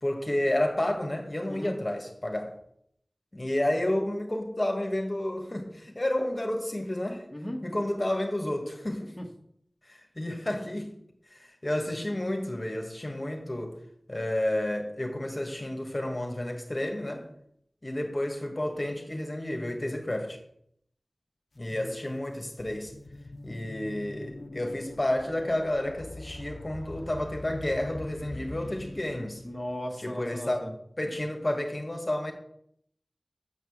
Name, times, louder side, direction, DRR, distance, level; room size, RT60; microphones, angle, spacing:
voice 1, 0.0-2.5 3.3-7.2 7.6-9.1 9.9-10.9 11.3-13.7 14.1-17.3 17.8-20.4 21.6-22.9 23.4-29.4 30.0-30.6 31.0-32.3, left 1 dB, 35° left, 1.7 m, -31 dB
sound 1, 21.6-21.7 22.2-29.8, left 2 dB, 85° left, 0.7 m, -43 dB
voice 2, 29.4-30.7, equal, 15° left, 1.5 m, -36 dB
7.0 x 6.0 x 7.3 m
wide cardioid pair, 55°, 0 cm